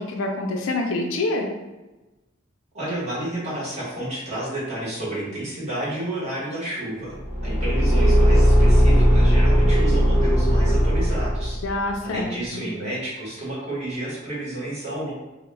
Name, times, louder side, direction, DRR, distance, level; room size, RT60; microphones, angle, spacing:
voice 1, 0.0-1.5 11.6-12.6, left 2 dB, 75° left, 1 dB, 0.4 m, -26 dB
voice 2, 2.7-11.6 12.0-15.1, right 1 dB, 35° right, -7 dB, 0.9 m, -31 dB
Car / Engine, 7.2-11.7, equal, 5° right, 0.5 m, -17 dB
2.2 x 2.1 x 3.1 m, 1.1 s
head